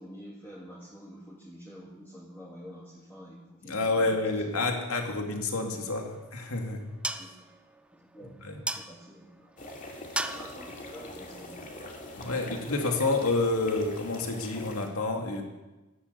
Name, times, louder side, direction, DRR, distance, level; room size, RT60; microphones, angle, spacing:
voice 1, 0.0-4.6 6.7-6.8 7.2-7.3 7.9-8.3 8.8-9.5 10.3-11.9, equal, 10° left, -5 dB, 2.3 m, -48 dB
voice 2, 3.6-6.9 8.4-8.5 12.1-15.4, left 2 dB, 90° left, 3 dB, 2.5 m, -29 dB
sound 1, 5.9-12.3, right 2 dB, 5° right, 0.6 m, -40 dB
sound 2, 9.6-14.9, left 1 dB, 40° left, 2.5 m, -43 dB
12.5 x 12.0 x 8.4 m, 1.1 s
head